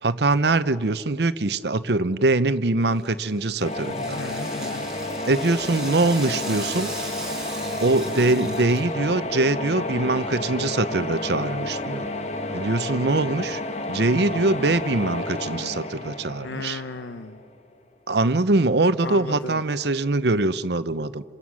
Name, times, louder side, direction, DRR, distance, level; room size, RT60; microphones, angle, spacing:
voice 1, 0.0-4.2 5.3-6.9 7.8-12.1 12.5-13.6 13.9-16.8 18.1-21.2, right 2 dB, 65° right, 13 dB, 0.8 m, -23 dB
Rattle (instrument), 2.9-9.1, right 2 dB, 5° right, 5.2 m, -38 dB
sound 1, 3.6-17.4, left 2 dB, 35° left, 1.3 m, -31 dB
voice 2, 4.2-4.9 16.4-17.4 19.0-19.6, left 3 dB, 85° left, 8 dB, 1.0 m, -35 dB
28.0 x 26.5 x 6.3 m, 2.2 s
head